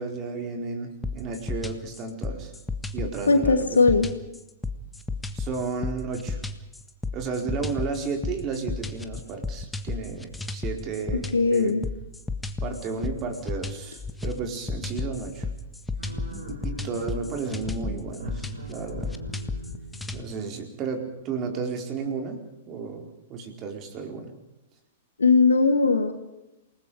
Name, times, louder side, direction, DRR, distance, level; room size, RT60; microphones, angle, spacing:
voice 1, 0.0-2.5 2.9-3.8 5.3-6.4 7.1-11.8 12.6-15.5 16.6-19.2 20.1-24.3, right 4 dB, 30° right, 4 dB, 4.5 m, -33 dB
sound 1, 1.0-20.2, left 3 dB, 5° left, 1.5 m, -33 dB
voice 2, 3.3-4.1 11.3-11.8 25.2-26.1, left 4 dB, 75° left, 7 dB, 2.5 m, -19 dB
sound 2, 16.0-21.3, right 1 dB, 75° right, 5.6 m, -41 dB
28.5 x 19.5 x 5.0 m, 0.93 s
figure-of-eight pair, 105°, 0 cm